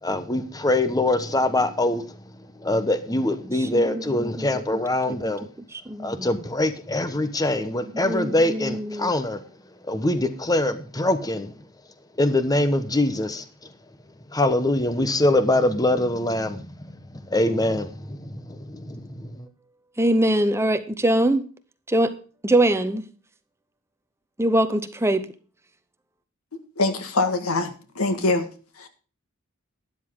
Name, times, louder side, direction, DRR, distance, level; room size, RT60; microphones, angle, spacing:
voice 1, 0.0-5.5 6.0-9.4 9.8-11.7 12.2-13.7 14.3-19.5, left 1 dB, 20° left, 1.0 m, -24 dB
voice 2, 3.5-3.9 4.2-4.6 5.9-6.3 8.1-9.1 20.0-21.4 21.9-22.1 22.4-23.0 24.4-25.2, right 1 dB, 10° right, 0.9 m, -22 dB
voice 3, 26.5-28.5 28.8-28.9, left 2 dB, 90° left, 1.8 m, -24 dB
12.5 x 10.5 x 3.7 m
head